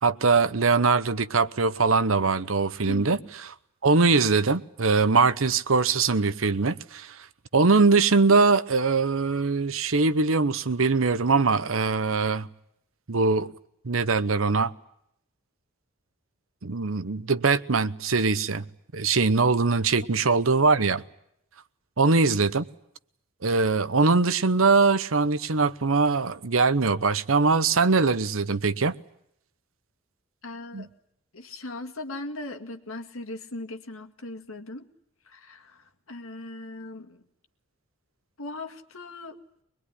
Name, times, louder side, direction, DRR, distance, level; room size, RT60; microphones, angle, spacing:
voice 1, 0.0-3.2 3.8-7.1 7.5-12.5 13.1-13.5 13.8-14.7 16.6-18.6 18.9-21.0 22.0-22.6 23.4-28.9 30.7-30.9, right 4 dB, 70° right, 0.9 m, -22 dB
voice 2, 2.8-3.3 20.2-20.4 30.4-30.9 31.3-34.9 35.3-37.2 38.4-39.4, left 2 dB, 75° left, 2.1 m, -39 dB
23.0 x 21.5 x 9.9 m
head